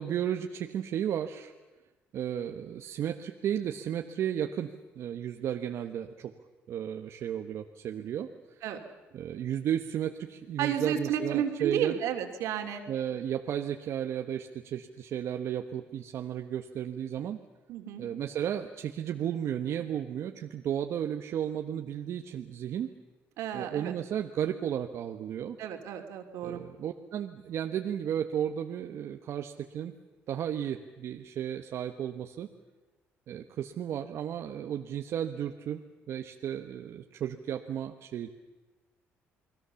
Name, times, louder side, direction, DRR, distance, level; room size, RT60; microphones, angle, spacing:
voice 1, 0.0-1.5 2.1-4.7 4.9-6.3 6.7-8.6 9.1-12.0 12.9-17.4 18.0-22.9 23.5-25.6 26.4-29.9 30.3-32.5 33.3-35.8 36.1-38.3, right 9 dB, 65° right, 5 dB, 1.2 m, -34 dB
voice 2, 10.6-12.8 17.7-18.0 23.4-23.9 25.6-26.6, right 9 dB, 85° right, 5 dB, 3.0 m, -32 dB
29.5 x 21.0 x 7.0 m, 1.2 s
cardioid pair, 115°, 5 cm